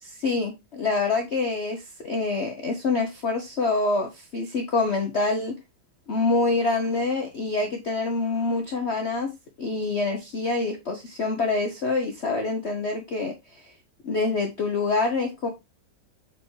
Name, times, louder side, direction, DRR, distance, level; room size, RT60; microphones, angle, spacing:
voice 1, 0.0-5.6 6.1-9.3 9.6-13.6 14.0-15.5, left 3 dB, 45° left, 3 dB, 0.9 m, -26 dB
6.7 x 4.7 x 3.2 m, 0.23 s
omnidirectional pair, 2.0 m